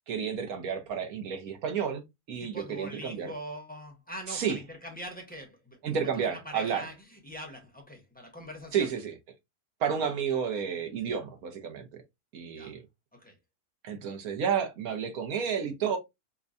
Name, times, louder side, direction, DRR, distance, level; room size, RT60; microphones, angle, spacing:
voice 1, 0.1-3.3 4.3-4.6 5.8-6.9 8.7-9.1 9.8-11.9 12.3-12.8 13.8-16.0, right 7 dB, 70° right, 1.3 m, -31 dB
voice 2, 2.4-8.9 12.5-12.8 13.1-13.4, equal, 10° left, 0.7 m, -43 dB
5.1 x 2.2 x 2.5 m
omnidirectional pair, 1.6 m